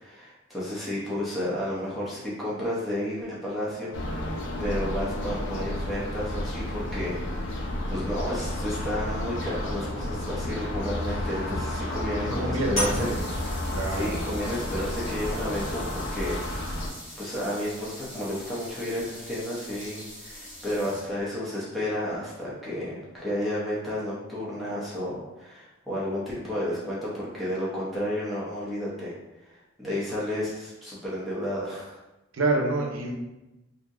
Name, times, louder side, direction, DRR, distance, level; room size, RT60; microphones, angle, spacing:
voice 1, 0.0-7.2 7.5-13.1 13.9-16.4 17.2-29.2 29.4-32.0, left 1 dB, ahead, -9 dB, 0.6 m, -32 dB
sound 1, 3.9-16.9, left 1 dB, 60° left, 0.4 m, -31 dB
voice 2, 12.2-13.3 13.7-14.2 32.3-33.1, right 2 dB, 75° right, 0 dB, 0.6 m, -28 dB
sound 2, 12.7-21.3, equal, 40° left, 0.9 m, -38 dB
2.7 x 2.1 x 3.6 m, 0.99 s
head